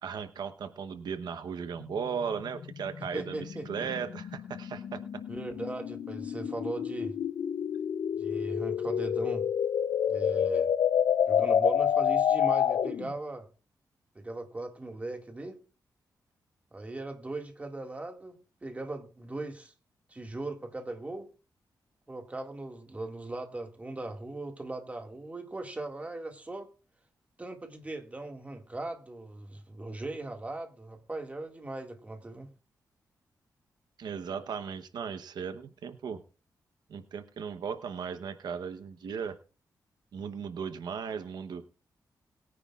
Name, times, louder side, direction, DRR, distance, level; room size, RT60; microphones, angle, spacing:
voice 1, 0.0-5.0 34.0-36.2 36.9-39.3 40.1-41.6, right 6 dB, 80° right, 1.0 m, -36 dB
sound 1, 1.8-13.1, left 8 dB, 75° left, 0.5 m, -29 dB
voice 2, 3.1-4.0 5.3-7.1 8.2-9.5 10.1-10.7 11.3-13.5 14.2-15.6 16.7-19.7 20.1-21.3 22.1-26.7 27.4-32.5, right 2 dB, 20° right, 2.0 m, -39 dB
21.5 x 9.9 x 2.4 m
wide cardioid pair, 125°, 7 cm